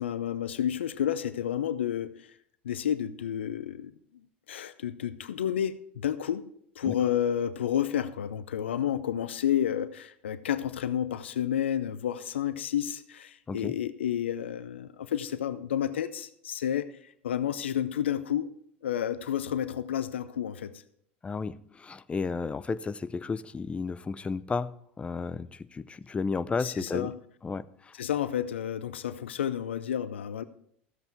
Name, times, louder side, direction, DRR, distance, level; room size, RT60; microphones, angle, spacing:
voice 1, 0.0-2.3 2.6-3.9 4.5-6.4 6.8-18.5 18.8-20.7 26.6-27.2 28.0-30.4, left 10 dB, 80° left, 0.6 m, -30 dB
voice 2, 21.2-27.1 27.4-27.9, left 4 dB, 20° left, 0.6 m, -33 dB
14.0 x 7.8 x 4.5 m
hypercardioid pair, 85°, 6 cm